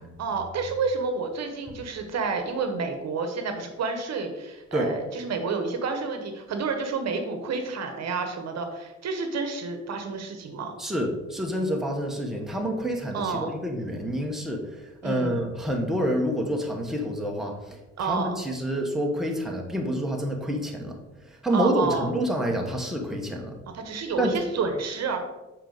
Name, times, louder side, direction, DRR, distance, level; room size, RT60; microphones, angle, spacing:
voice 1, 0.2-10.7 13.1-13.5 15.0-15.4 18.0-18.4 21.5-22.1 23.7-25.2, right 4 dB, 60° right, 6 dB, 1.0 m, -29 dB
voice 2, 10.8-21.0 21.3-23.6 24.2-24.3, right 1 dB, ahead, 0 dB, 1.1 m, -28 dB
6.7 x 4.5 x 3.9 m, 1.1 s
cardioid pair, 90°, 30 cm